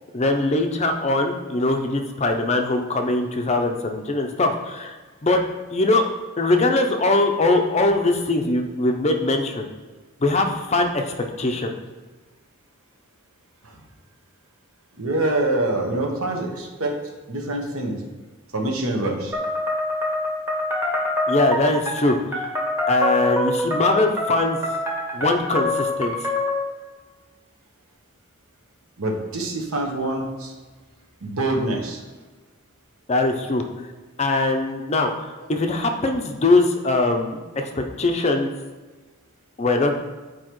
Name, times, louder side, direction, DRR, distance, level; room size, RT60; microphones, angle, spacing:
voice 1, 0.1-5.0 5.2-5.4 5.7-6.1 6.4-9.7 10.2-11.7 21.3-22.4 22.9-24.6 25.1-26.2 33.1-33.6 34.2-35.1 35.5-38.5 39.6-39.9, left 2 dB, 30° left, 4 dB, 0.5 m, -21 dB
voice 2, 15.0-16.9 17.3-18.0 18.5-19.4 29.0-30.5 31.2-32.0, right 2 dB, 70° right, 1 dB, 1.1 m, -25 dB
sound 1, 19.3-26.7, left 2 dB, 10° right, 1.0 m, -25 dB
8.5 x 4.7 x 3.0 m, 1.3 s
head